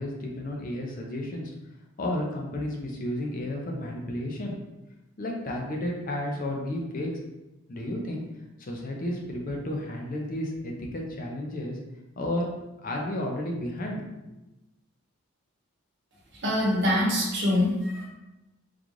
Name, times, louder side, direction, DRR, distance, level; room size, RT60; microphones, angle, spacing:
voice 1, 0.0-1.5 2.0-4.6 5.2-7.1 7.7-8.2 8.6-11.8 12.2-12.5 12.8-14.0, left 1 dB, 40° left, 0 dB, 0.5 m, -32 dB
voice 2, 16.4-18.1, left 1 dB, 55° right, -3 dB, 1.0 m, -24 dB
3.7 x 2.4 x 3.0 m, 0.99 s
head